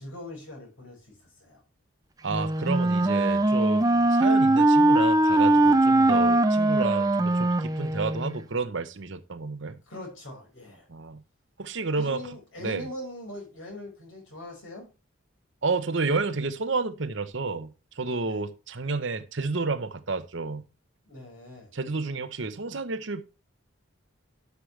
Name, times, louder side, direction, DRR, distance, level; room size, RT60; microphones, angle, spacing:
voice 1, 0.0-1.6 9.9-10.9 12.0-14.9 18.2-18.4 21.1-21.7, left 1 dB, 80° left, 5.2 m, -41 dB
voice 2, 2.2-9.8 10.9-11.2 11.6-12.2 12.6-12.9 15.6-20.6 21.7-23.2, right 3 dB, 65° right, 0.9 m, -30 dB
Wind instrument woodwind instrument, 2.3-8.4, right 2 dB, 20° right, 0.5 m, -21 dB
11.5 x 6.5 x 3.3 m
head